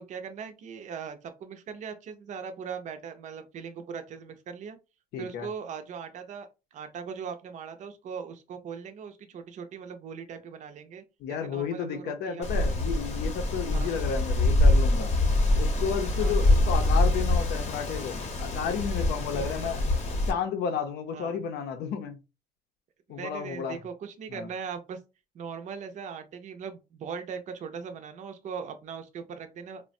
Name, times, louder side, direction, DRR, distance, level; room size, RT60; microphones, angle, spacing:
voice 1, 0.0-4.8 5.2-11.0 11.3-12.8 13.7-13.9 16.2-16.5 19.3-19.7 21.1-21.4 23.1-25.0 25.3-29.8, right 6 dB, 45° right, 0.5 m, -40 dB
voice 2, 5.1-5.5 11.2-15.1 15.6-19.8 20.3-22.2 23.1-23.8 24.3-24.5, left 7 dB, 75° left, 0.6 m, -32 dB
Wind, 12.4-20.3, left 2 dB, 40° left, 0.7 m, -25 dB
3.1 x 2.1 x 2.5 m
cardioid pair, 110°, 17 cm